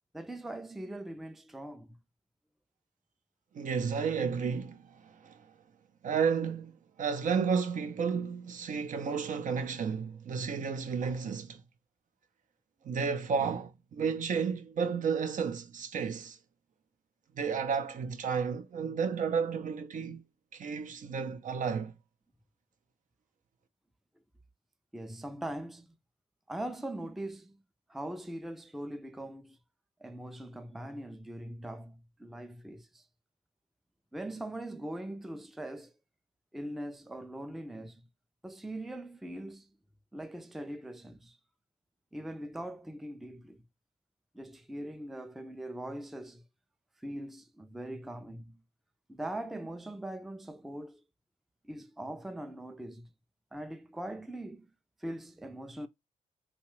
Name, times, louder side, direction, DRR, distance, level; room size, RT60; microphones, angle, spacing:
voice 1, 0.1-2.0 24.9-25.9 26.5-27.6 27.9-29.6 30.0-33.0 34.1-35.9 36.5-38.0 38.4-39.7 40.1-41.4 42.1-43.6 44.3-46.4 47.0-48.6 49.1-51.0 51.6-53.1 53.5-54.7 55.0-55.9, right 1 dB, ahead, 0.3 m, -41 dB
voice 2, 3.5-5.4 6.0-11.6 12.8-16.4 17.4-20.2 20.5-21.9, right 6 dB, 65° right, 0.5 m, -32 dB
2.9 x 2.3 x 3.0 m
cardioid pair, 70°, 15 cm